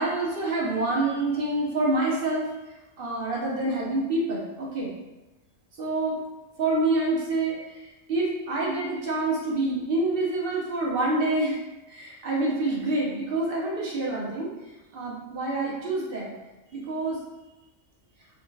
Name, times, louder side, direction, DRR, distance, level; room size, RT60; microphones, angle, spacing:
voice 1, 0.0-2.5 3.0-4.9 5.8-6.2 6.6-11.6 11.9-14.5 14.9-16.3 16.7-17.2, right 2 dB, 55° right, -4 dB, 0.8 m, -27 dB
3.8 x 2.2 x 2.2 m, 1.1 s
omnidirectional pair, 1.3 m